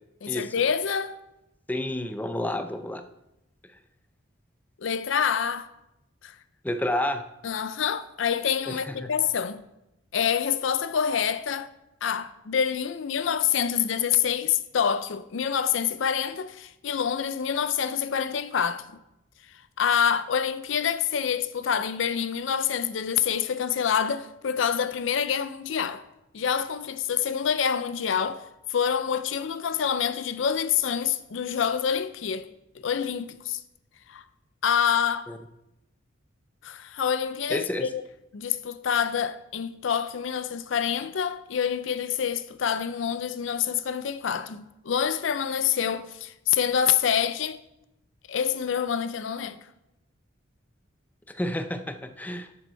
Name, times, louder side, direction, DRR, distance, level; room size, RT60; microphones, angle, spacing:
voice 1, 0.2-1.2 4.8-5.7 6.2-6.3 7.4-9.6 10.1-11.7 12.0-18.9 19.8-26.0 26.3-28.4 28.7-32.5 32.8-33.6 34.1-34.2 34.6-35.3 36.6-38.0 38.3-47.6 48.3-49.6, left 8 dB, 70° left, 0.5 m, -26 dB
voice 2, 1.7-3.0 6.6-7.2 8.7-9.1 35.3-35.4 37.5-37.9 51.3-52.5, left 1 dB, 10° left, 0.5 m, -30 dB
10.5 x 6.9 x 4.5 m
head